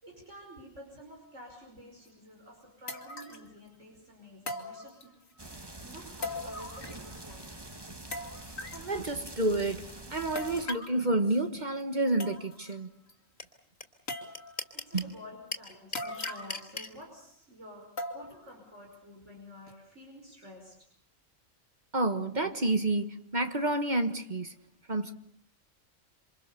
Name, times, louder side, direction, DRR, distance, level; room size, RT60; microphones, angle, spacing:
voice 1, 0.0-5.1 5.8-7.6 14.7-20.8, equal, 65° right, 5.7 m, -50 dB
sound 1, 2.1-2.2 2.9-3.5 4.5-5.3 6.2-7.1 7.4-7.5 8.1-8.9 10.4-11.0 11.8-11.9 12.2-12.7 13.1-13.2 14.1-14.7 15.9-16.7 17.0-17.1 18.0-18.5 18.9-19.0 19.7-19.8, left 2 dB, 90° left, 2.8 m, -40 dB
sound 2, 5.4-10.7, right 2 dB, 20° right, 1.6 m, -46 dB
voice 2, 8.7-12.9 14.9-15.1 21.9-24.6 24.9-25.1, right 2 dB, 35° right, 1.7 m, -29 dB
sound 3, 13.4-13.5 13.8-13.9 14.1-15.1 15.5-16.9, left 2 dB, 35° left, 3.0 m, -36 dB
28.0 x 26.5 x 6.9 m
omnidirectional pair, 1.3 m